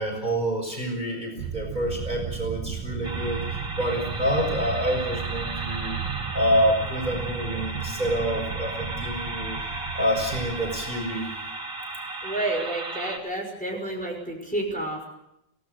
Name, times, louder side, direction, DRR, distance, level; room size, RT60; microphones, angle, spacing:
voice 1, 0.0-5.9 6.3-9.6 9.9-11.3 13.7-13.9, equal, 20° right, 1 dB, 5.9 m, -27 dB
sound 1, 1.4-11.5, right 6 dB, 70° right, 3.4 m, -34 dB
sound 2, 3.0-13.2, right 2 dB, 40° right, 3.8 m, -35 dB
voice 2, 12.2-15.0, right 2 dB, 5° left, 0 dB, 5.6 m, -30 dB
28.5 x 18.5 x 6.9 m, 0.83 s
omnidirectional pair, 2.2 m